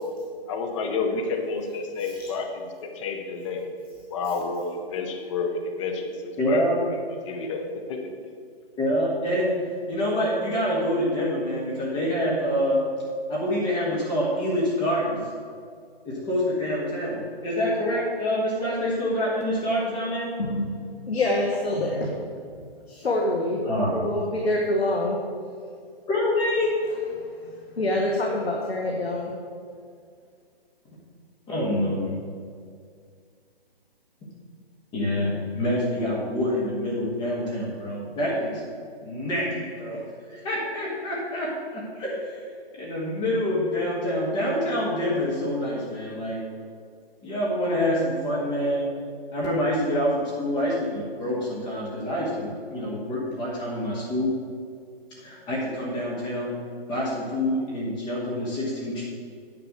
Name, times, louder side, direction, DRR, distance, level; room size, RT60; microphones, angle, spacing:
voice 1, 0.5-3.7 4.1-7.0 7.3-8.1, left 4 dB, 30° left, 3 dB, 0.9 m, -30 dB
voice 2, 6.4-6.8 8.8-9.6 9.9-12.8 13.3-15.2 16.0-20.3 23.6-24.0 26.1-26.8 31.5-32.1 34.9-38.6 39.0-42.5 42.7-46.4 47.2-48.9 49.3-54.3 55.2-56.6 56.9-59.1, left 1 dB, 15° left, -5 dB, 1.3 m, -26 dB
voice 3, 20.4-22.1 22.9-23.6 23.9-25.2 27.2-29.3, left 1 dB, 85° left, 0 dB, 1.5 m, -26 dB
9.3 x 5.3 x 6.4 m, 2.2 s
hypercardioid pair, 145°, 30 cm